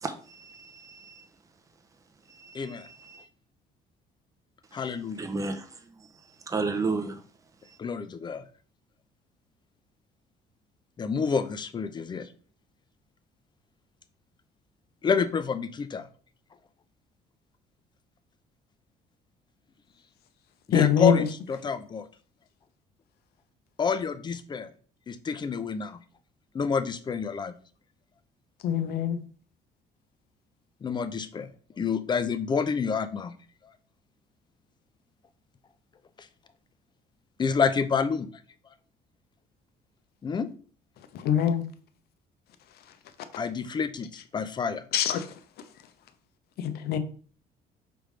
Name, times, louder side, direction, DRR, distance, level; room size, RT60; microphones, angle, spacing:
voice 1, 0.0-1.3 2.3-3.3 4.7-4.8 5.2-6.1 6.5-7.2 7.6-7.8, right 3 dB, 20° right, 0.6 m, -34 dB
voice 2, 2.5-2.9 4.7-5.3 7.8-8.4 11.0-12.3 15.0-16.1 20.7-22.1 23.8-24.7 25.1-26.0 26.5-27.5 30.8-31.5 31.8-33.3 37.4-38.3 40.2-40.5 43.4-44.8, left 5 dB, 25° left, 0.4 m, -28 dB
voice 3, 20.7-21.3 28.6-29.2 41.1-41.7 44.9-45.3 46.6-47.0, left 9 dB, 70° left, 0.6 m, -24 dB
4.9 x 3.4 x 3.2 m
cardioid pair, 110°, 17 cm